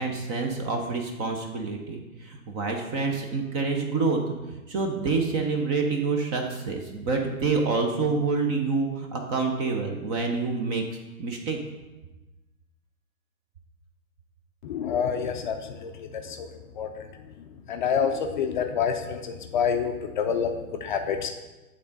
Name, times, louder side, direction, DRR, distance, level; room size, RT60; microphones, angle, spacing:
voice 1, 0.0-4.2 4.7-10.8 11.2-11.6, right 4 dB, 20° right, 3 dB, 0.5 m, -27 dB
voice 2, 14.6-16.5 16.8-16.9 17.7-20.5 20.8-21.3, left 7 dB, 35° left, 5 dB, 0.5 m, -27 dB
8.5 x 3.6 x 5.2 m, 1.1 s
hypercardioid pair, 120°, 43 cm